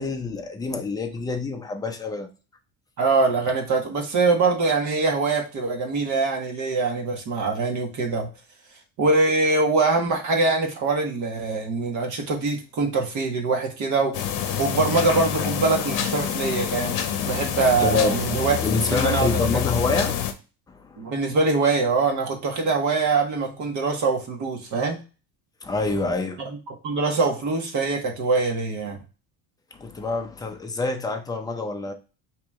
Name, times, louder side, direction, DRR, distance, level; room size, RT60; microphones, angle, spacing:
voice 1, 0.0-2.3 17.8-18.2 18.6-20.1 20.7-21.1 25.6-26.4 29.7-31.9, left 3 dB, 10° left, 0.5 m, -26 dB
voice 2, 3.0-8.3 9.0-14.3 14.6-16.9 17.2-18.6 18.9-19.3 21.0-25.0 26.4-29.0, right 3 dB, 45° right, 1.4 m, -23 dB
sound 1, 14.1-20.3, left 9 dB, 55° left, 0.8 m, -27 dB
4.8 x 3.1 x 3.6 m
cardioid pair, 155°, 39 cm